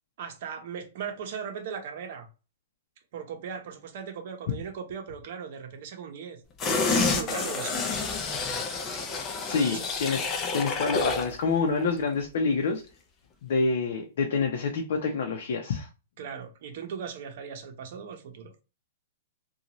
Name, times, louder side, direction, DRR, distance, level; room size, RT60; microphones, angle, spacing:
voice 1, 0.2-2.3 3.1-7.9 9.7-9.8 16.2-18.5, right 7 dB, 55° right, 0.8 m, -38 dB
sound 1, 6.6-11.3 11.7-11.8, left 4 dB, 20° left, 0.5 m, -29 dB
voice 2, 9.5-10.2 10.5-12.8 13.4-15.9, left 4 dB, 60° left, 0.6 m, -27 dB
2.6 x 2.3 x 3.0 m
hypercardioid pair, 155°, 0 cm